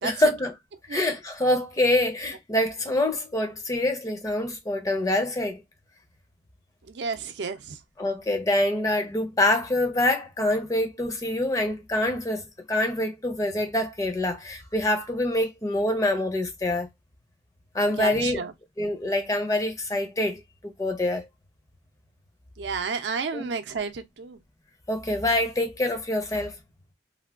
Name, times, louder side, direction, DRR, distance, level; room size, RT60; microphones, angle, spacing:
voice 1, 0.0-0.5 0.9-5.6 8.0-16.9 17.7-18.4 18.8-21.3 23.3-23.5 24.9-26.6, left 1 dB, 20° left, 0.5 m, -25 dB
voice 2, 6.9-7.8 18.0-18.5 22.6-24.4, right 5 dB, 75° right, 0.5 m, -31 dB
3.3 x 2.2 x 2.3 m
head